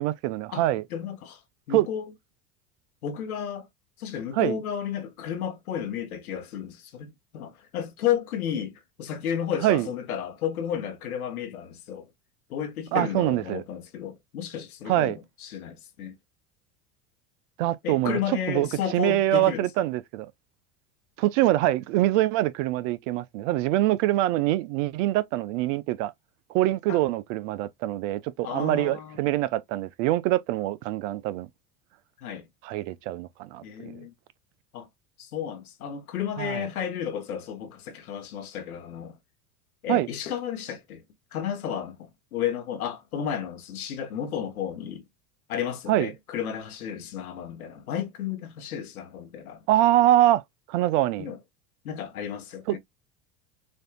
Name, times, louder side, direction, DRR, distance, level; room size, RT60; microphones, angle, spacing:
voice 1, 0.0-0.8 1.7-1.9 4.3-4.6 9.6-9.9 12.9-13.6 14.9-15.2 17.6-20.3 21.2-26.1 26.5-31.5 32.6-34.1 36.4-36.7 39.9-40.1 45.9-46.1 49.7-50.4 50.7-51.3 52.7-52.8, right 15 dB, 60° right, 0.6 m, -24 dB
voice 2, 0.5-1.4 1.7-2.1 3.0-3.7 4.0-12.1 12.5-15.1 15.4-16.1 17.8-19.9 26.9-27.0 28.4-29.2 32.2-32.5 33.6-34.1 34.7-34.9 35.2-39.2 39.8-41.0 41.3-45.0 45.5-49.6 51.2-51.4 51.8-52.8, left 9 dB, 80° left, 1.2 m, -32 dB
6.4 x 2.6 x 2.3 m
hypercardioid pair, 80°, 43 cm